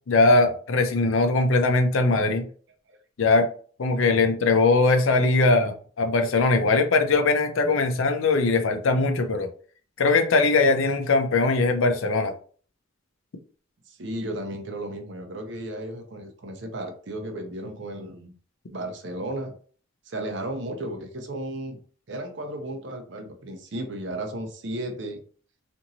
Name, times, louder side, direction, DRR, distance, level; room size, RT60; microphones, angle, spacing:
voice 1, 0.1-2.4 3.2-3.5 3.8-9.5 10.0-12.3, left 3 dB, 75° left, 6 dB, 0.5 m, -21 dB
voice 2, 13.9-18.3 18.7-19.6 20.1-21.8 22.1-25.2, right 1 dB, 60° right, 5 dB, 0.6 m, -34 dB
2.9 x 2.6 x 2.6 m, 0.44 s
head